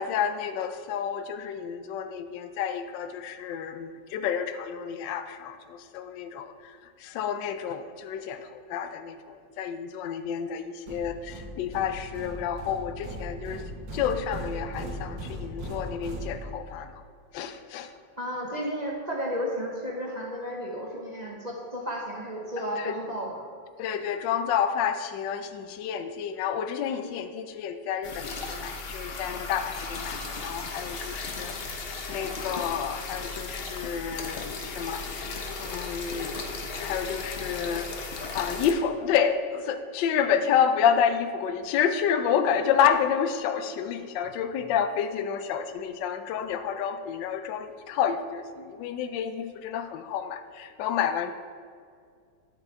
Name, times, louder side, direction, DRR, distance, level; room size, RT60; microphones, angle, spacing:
voice 1, 0.0-17.0 17.3-17.9 22.8-23.0 23.8-36.4 36.7-51.3, left 8 dB, 75° left, 9 dB, 1.2 m, -29 dB
sound 1, 10.9-16.9, equal, 75° right, 1.7 m, -38 dB
voice 2, 18.2-23.4, equal, 30° right, -3 dB, 0.7 m, -33 dB
sound 2, 28.0-38.7, left 3 dB, 60° left, 0.6 m, -36 dB
10.5 x 6.0 x 4.4 m, 2.1 s
omnidirectional pair, 2.1 m